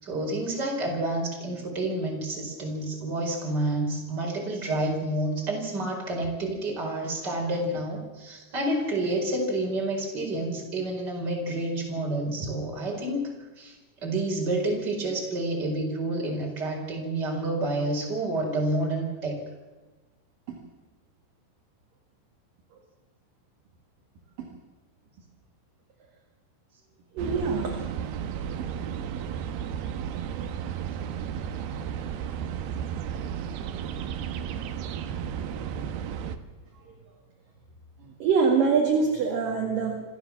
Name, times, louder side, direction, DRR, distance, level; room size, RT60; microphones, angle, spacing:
voice 1, 0.0-13.3 13.6-19.4, right 2 dB, 20° right, 0 dB, 4.7 m, -29 dB
voice 2, 27.1-27.8 28.6-28.7 33.2-33.3 38.2-40.0, right 5 dB, 55° right, 1 dB, 3.2 m, -24 dB
sound 1, 27.2-36.4, right 8 dB, 70° right, 2.6 m, -33 dB
26.5 x 15.0 x 7.3 m, 1.2 s
omnidirectional pair, 5.7 m